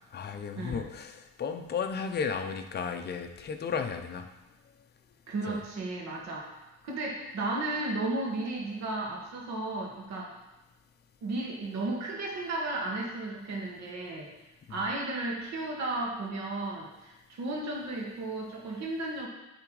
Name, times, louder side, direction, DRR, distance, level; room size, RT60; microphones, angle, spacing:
voice 1, 0.1-4.3 5.5-5.6 14.7-14.8, left 6 dB, 35° left, 5 dB, 0.6 m, -34 dB
voice 2, 5.3-6.5 6.8-10.3 11.2-14.3 14.7-19.3, right 2 dB, 60° right, -1 dB, 1.7 m, -34 dB
8.8 x 3.4 x 4.8 m, 1.0 s
cardioid pair, 155°, 31 cm